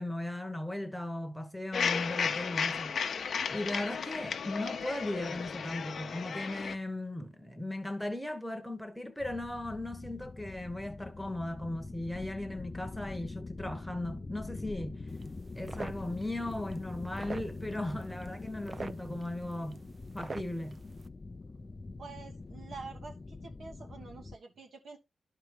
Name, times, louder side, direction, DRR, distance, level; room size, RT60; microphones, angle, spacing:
voice 1, 0.0-3.2 3.5-15.0 15.5-19.8 20.1-20.8, left 1 dB, ahead, 1.2 m, -37 dB
sound 1, 1.7-6.7, left 6 dB, 65° left, 0.7 m, -34 dB
sound 2, 9.2-24.4, left 3 dB, 30° left, 0.5 m, -44 dB
sound 3, 15.1-21.1, right 3 dB, 35° right, 0.4 m, -46 dB
voice 2, 22.0-25.0, right 4 dB, 65° right, 1.6 m, -47 dB
11.5 x 4.5 x 3.3 m
wide cardioid pair, 115°, 0 cm